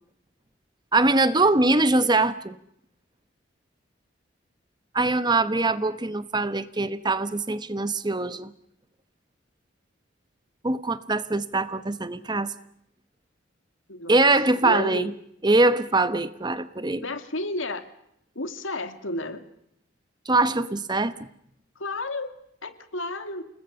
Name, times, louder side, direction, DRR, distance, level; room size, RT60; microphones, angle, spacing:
voice 1, 0.9-2.6 4.9-8.5 10.6-12.5 14.1-15.1 15.4-17.0 20.3-21.2, right 2 dB, 20° right, 13 dB, 1.0 m, -22 dB
voice 2, 13.9-14.3 14.6-15.1 17.0-17.9 18.3-19.5 21.8-22.4 22.6-23.5, left 2 dB, 80° left, 9 dB, 2.3 m, -32 dB
29.5 x 20.5 x 6.9 m, 0.73 s
head